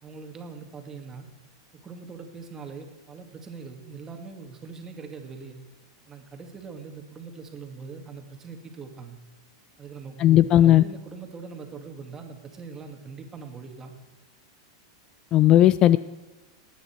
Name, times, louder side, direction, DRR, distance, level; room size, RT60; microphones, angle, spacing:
voice 1, 0.0-1.3 1.7-5.6 6.1-9.2 9.8-13.9, right 5 dB, 20° right, 5 dB, 1.9 m, -41 dB
voice 2, 10.2-10.8 15.3-16.0, left 13 dB, 35° left, 16 dB, 0.3 m, -16 dB
19.0 x 9.4 x 4.5 m, 1.2 s
hypercardioid pair, 130°, 2 cm